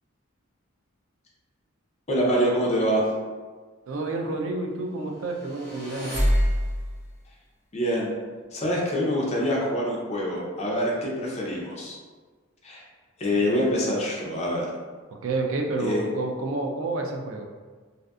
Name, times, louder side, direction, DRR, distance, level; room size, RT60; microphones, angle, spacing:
voice 1, 2.1-3.0 7.7-8.1 8.5-12.0 12.6-12.8 13.2-14.7 15.8-16.0, equal, 30° left, -3 dB, 0.5 m, -25 dB
voice 2, 3.9-6.2 15.2-17.4, right 2 dB, 75° right, 2 dB, 0.4 m, -29 dB
sound 1, 5.3-7.1, equal, 35° right, 1.0 m, -25 dB
2.5 x 2.4 x 2.3 m, 1.4 s
head